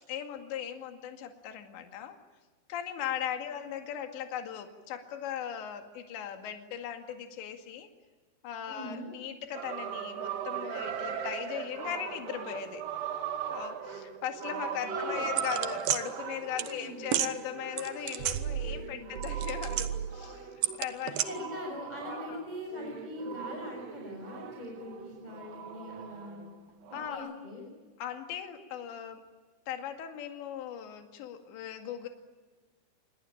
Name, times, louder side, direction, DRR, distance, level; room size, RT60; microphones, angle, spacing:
voice 1, 0.1-2.2 2.7-7.9 8.4-12.8 13.5-20.5 20.8-21.2 22.1-22.4 26.9-27.3 28.0-29.2 29.7-32.1, left 9 dB, 65° left, 5 dB, 4.2 m, -38 dB
voice 2, 8.7-9.1 14.6-15.3 16.6-17.1 18.8-19.2 21.1-26.5 27.1-27.7, left 1 dB, 10° left, 0 dB, 5.6 m, -42 dB
sound 1, 9.5-26.5 26.8-27.1, right 7 dB, 60° right, 3.8 m, -39 dB
sound 2, 15.4-16.0 16.6-16.7 17.1-17.3 17.8-18.9 19.2-20.1 20.6-21.3, right 11 dB, 80° right, 2.0 m, -31 dB
27.5 x 22.0 x 8.8 m, 1.3 s
omnidirectional pair, 5.8 m